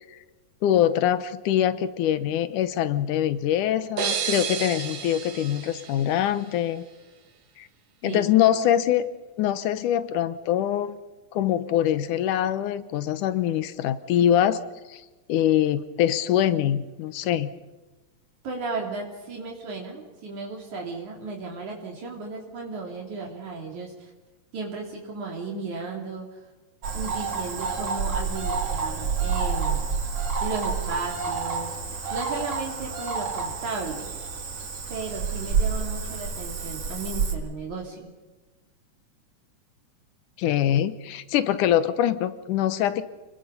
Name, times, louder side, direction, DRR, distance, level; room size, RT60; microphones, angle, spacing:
voice 1, 0.6-6.8 7.6-7.7 8.0-9.1 9.4-11.0 11.3-14.6 14.9-15.0 15.3-17.5 40.4-43.1, left 11 dB, 80° left, 13 dB, 2.4 m, -23 dB
sound 1, 4.0-6.7, right 7 dB, 85° right, 3.4 m, -31 dB
voice 2, 8.0-8.4 18.4-24.1 24.5-26.4 26.9-29.9 30.4-34.1 34.9-38.1, right 3 dB, 65° right, 0 dB, 4.2 m, -35 dB
Cricket / Frog, 26.8-37.3, right 5 dB, 50° right, 2.9 m, -29 dB
29.5 x 21.0 x 5.5 m, 1.2 s
omnidirectional pair, 3.7 m